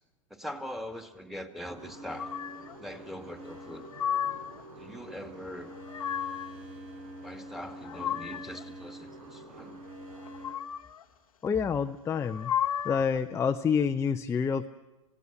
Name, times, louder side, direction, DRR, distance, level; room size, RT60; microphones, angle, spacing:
voice 1, 0.3-2.3 2.8-3.9 4.8-5.7 7.2-9.8, equal, ahead, 6 dB, 2.0 m, -42 dB
sound 1, 1.7-10.5, right 1 dB, 70° right, 7.4 m, -46 dB
sound 2, 2.2-2.8 3.6-4.6 5.6-6.6 7.5-8.6 10.2-11.0 12.1-13.2, left 9 dB, 85° left, 1.0 m, -34 dB
voice 2, 11.4-12.5 12.8-14.7, left 6 dB, 15° left, 6 dB, 0.7 m, -28 dB
27.5 x 17.0 x 7.2 m, 1.1 s
hypercardioid pair, 105°, 17 cm